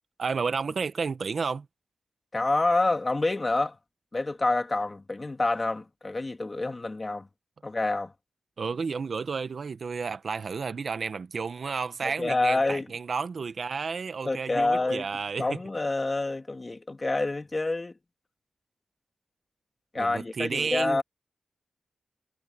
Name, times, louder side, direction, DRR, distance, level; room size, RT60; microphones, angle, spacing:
voice 1, 0.2-1.7 8.6-15.5 20.0-21.0, right 5 dB, 50° right, 1.0 m, -31 dB
voice 2, 2.3-3.8 4.1-7.3 7.6-8.1 12.0-12.9 14.2-17.9 19.9-21.0, left 2 dB, 25° left, 2.3 m, -27 dB
wide cardioid pair, 155°, 0 cm